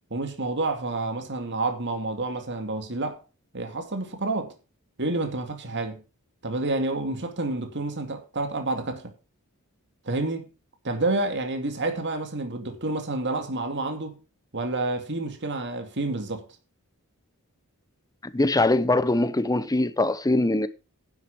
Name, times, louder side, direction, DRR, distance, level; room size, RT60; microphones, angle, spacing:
voice 1, 0.1-3.2 3.5-4.5 5.0-6.0 6.4-9.1 10.0-10.5 10.8-14.2 14.5-16.4, right 2 dB, 55° right, 2.5 m, -29 dB
voice 2, 18.2-20.7, left 2 dB, 15° left, 0.9 m, -22 dB
11.0 x 7.9 x 5.9 m
head